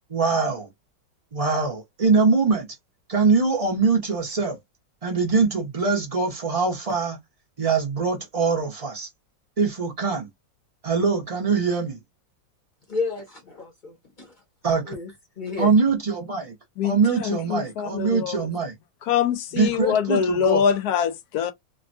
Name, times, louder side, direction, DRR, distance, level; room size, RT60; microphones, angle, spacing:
voice 1, 0.1-0.7 1.3-2.7 3.1-4.6 5.0-7.2 7.6-9.1 9.6-10.3 10.8-12.0 14.6-14.9 15.6-16.5 16.8-18.7 19.5-20.6, right 4 dB, 45° right, 0.4 m, -23 dB
voice 2, 12.9-14.4 14.8-15.1 15.4-15.7, left 4 dB, 35° left, 0.8 m, -31 dB
voice 3, 16.8-18.4 19.1-21.5, left 8 dB, 70° left, 0.9 m, -24 dB
3.4 x 2.2 x 2.6 m
omnidirectional pair, 2.0 m